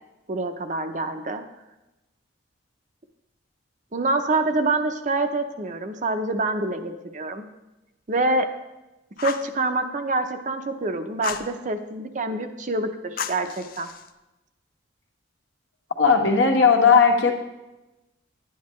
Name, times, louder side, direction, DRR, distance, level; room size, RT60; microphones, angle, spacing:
voice 1, 0.3-1.4 3.9-7.5 8.1-8.5 9.2-13.9, right 2 dB, 40° right, 7 dB, 0.7 m, -26 dB
Fire, 9.2-9.5 11.2-11.5 13.2-14.1, left 7 dB, 50° left, 0.5 m, -32 dB
voice 2, 16.0-17.3, left 5 dB, 80° left, 2 dB, 1.3 m, -16 dB
11.0 x 9.4 x 3.1 m, 1.0 s
head